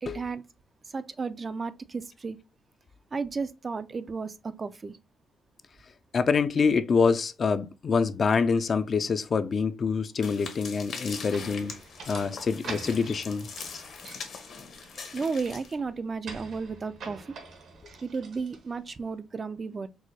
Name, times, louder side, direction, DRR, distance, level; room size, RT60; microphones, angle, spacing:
voice 1, 0.0-0.4 0.9-2.4 3.1-5.0 15.1-17.3 18.0-19.9, right 4 dB, 35° right, 0.3 m, -33 dB
voice 2, 6.1-11.8 12.1-13.5, left 5 dB, 45° left, 0.4 m, -26 dB
sound 1, 10.2-15.7, left 5 dB, 60° left, 0.8 m, -42 dB
sound 2, 11.3-19.0, right 4 dB, 65° right, 1.0 m, -45 dB
4.6 x 2.1 x 2.8 m
cardioid pair, 90°, 0 cm